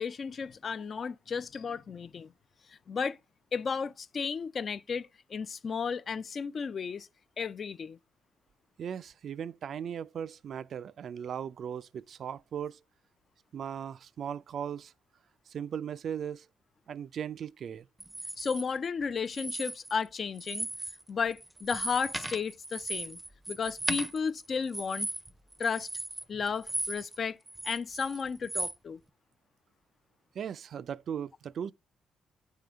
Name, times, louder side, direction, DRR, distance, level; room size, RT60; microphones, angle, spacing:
voice 1, 0.0-2.3 2.7-3.2 3.5-7.1 7.4-8.0 18.4-20.7 21.1-23.2 23.5-25.1 25.6-25.9 26.3-27.4 27.6-29.0, left 6 dB, 45° left, 0.4 m, -33 dB
voice 2, 8.8-12.8 13.5-14.9 15.5-16.5 16.9-17.9 30.3-31.7, right 8 dB, 60° right, 0.3 m, -38 dB
sound 1, 18.0-18.6 19.3-20.1 20.4-21.0 21.3-27.2 27.5-28.8, right 1 dB, 10° right, 0.5 m, -37 dB
8.3 x 3.8 x 3.3 m
cardioid pair, 90°, 0 cm